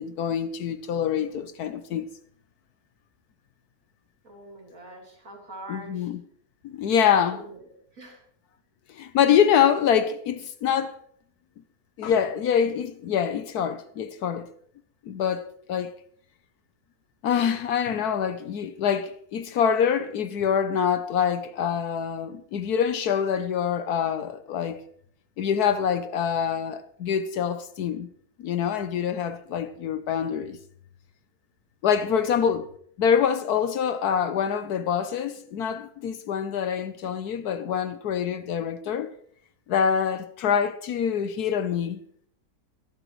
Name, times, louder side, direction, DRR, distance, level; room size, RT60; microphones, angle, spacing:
voice 1, 0.0-2.1 5.7-6.2 6.6-7.4 8.9-11.0 12.0-14.5 15.0-16.0 17.2-24.8 25.4-28.1 28.4-30.6 31.8-32.6 33.0-39.1 39.7-42.0, left 8 dB, 75° left, 1.3 m, -25 dB
voice 2, 4.2-6.1 6.9-8.2 31.8-32.3, right 2 dB, 55° right, 4.0 m, -43 dB
24.0 x 12.0 x 3.1 m
omnidirectional pair, 1.7 m